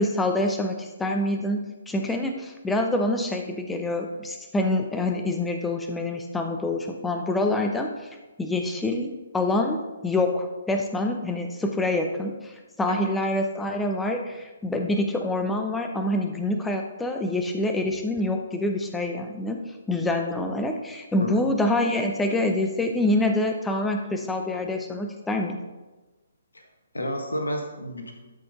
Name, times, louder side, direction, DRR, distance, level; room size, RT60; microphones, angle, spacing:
voice 1, 0.0-1.6 1.9-7.9 8.4-12.5 12.8-19.6 19.9-25.6, left 1 dB, 5° left, 4 dB, 0.7 m, -26 dB
voice 2, 21.2-21.5 26.5-26.7 26.9-28.1, equal, 75° left, 4 dB, 1.4 m, -31 dB
12.5 x 5.2 x 3.7 m, 1.2 s
figure-of-eight pair, 130°, 0 cm